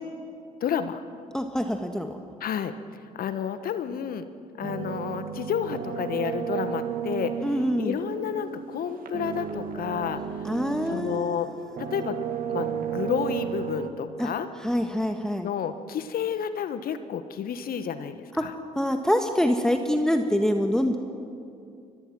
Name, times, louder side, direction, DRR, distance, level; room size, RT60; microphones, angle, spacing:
voice 1, 0.6-1.0 2.4-2.7 3.1-4.2 4.6-7.4 7.8-10.2 10.9-11.5 11.8-12.2 12.5-14.5 15.4-18.5, left 8 dB, 50° left, 11 dB, 1.3 m, -30 dB
voice 2, 1.3-2.2 7.4-8.0 10.4-11.8 14.2-14.3 14.6-15.5 18.3-18.5 18.7-21.0, equal, 5° left, 5 dB, 1.6 m, -25 dB
sound 1, 4.6-11.3 11.7-13.9, right 7 dB, 50° right, 1.9 m, -33 dB
29.0 x 22.5 x 6.2 m, 2.5 s
hypercardioid pair, 50°, 19 cm